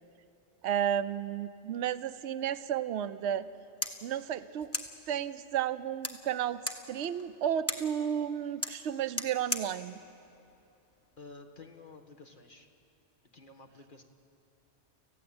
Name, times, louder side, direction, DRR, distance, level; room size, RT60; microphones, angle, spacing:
voice 1, 0.6-3.5 4.0-4.7 5.1-6.6 6.9-10.0, right 9 dB, 65° right, 13 dB, 1.0 m, -32 dB
sound 1, 3.4-11.4, left 1 dB, 10° left, 1.3 m, -41 dB
voice 2, 11.2-12.7 13.3-14.0, left 3 dB, 45° left, 3 dB, 1.6 m, -51 dB
28.5 x 15.5 x 8.7 m, 2.8 s
omnidirectional pair, 1.2 m